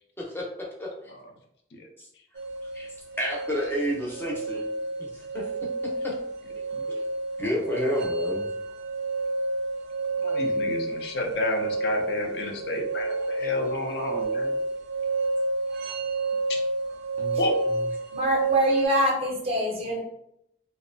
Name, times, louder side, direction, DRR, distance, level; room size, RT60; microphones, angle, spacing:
sound 1, 2.4-18.9, right 3 dB, 80° right, 0.4 m, -29 dB
voice 1, 3.2-4.7 5.0-5.5 6.0-6.1 7.4-8.5 13.4-13.5 17.2-17.4, equal, 10° left, 0.6 m, -30 dB
voice 2, 10.2-14.5 17.4-17.5, left 2 dB, 75° left, 0.5 m, -31 dB
voice 3, 18.1-20.0, equal, 35° right, 0.6 m, -25 dB
2.6 x 2.1 x 2.5 m
head